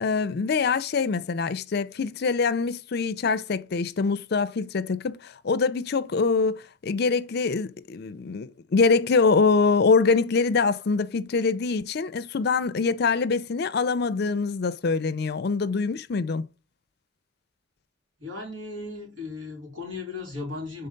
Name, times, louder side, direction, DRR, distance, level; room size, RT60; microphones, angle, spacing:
voice 1, 0.0-16.4, left 4 dB, 55° left, 0.5 m, -24 dB
voice 2, 18.2-20.9, left 3 dB, 90° right, 2.8 m, -36 dB
5.5 x 3.9 x 5.2 m
head